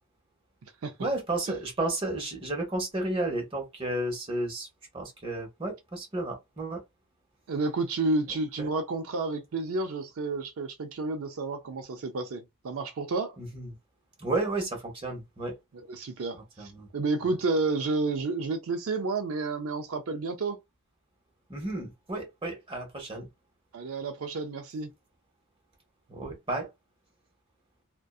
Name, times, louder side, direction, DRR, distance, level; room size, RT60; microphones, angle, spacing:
voice 1, 1.0-4.7 4.9-6.8 8.6-8.7 13.4-13.7 14.2-15.6 16.6-16.9 17.2-17.3 21.5-23.3 26.1-26.7, right 2 dB, 25° right, 1.0 m, -32 dB
voice 2, 7.5-13.4 15.9-20.6 23.7-24.9, right 3 dB, 75° right, 0.5 m, -30 dB
2.6 x 2.2 x 2.3 m
head